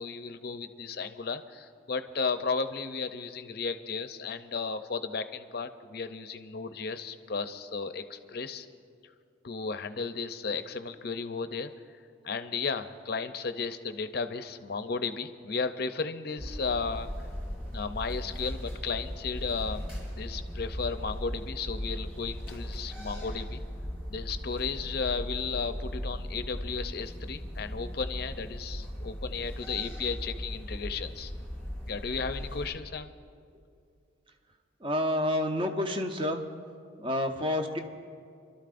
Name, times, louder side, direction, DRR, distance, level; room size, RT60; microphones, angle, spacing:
voice 1, 0.0-8.7 9.4-11.7 12.2-17.3 17.7-19.9 20.2-23.6 24.1-31.3 31.9-33.1, left 5 dB, 55° left, 10 dB, 0.6 m, -34 dB
sound 1, 16.4-32.7, equal, 5° right, 3.8 m, -38 dB
voice 2, 34.8-36.4 37.0-37.8, left 1 dB, 25° right, 5 dB, 0.8 m, -29 dB
28.5 x 12.5 x 2.5 m, 2.4 s
head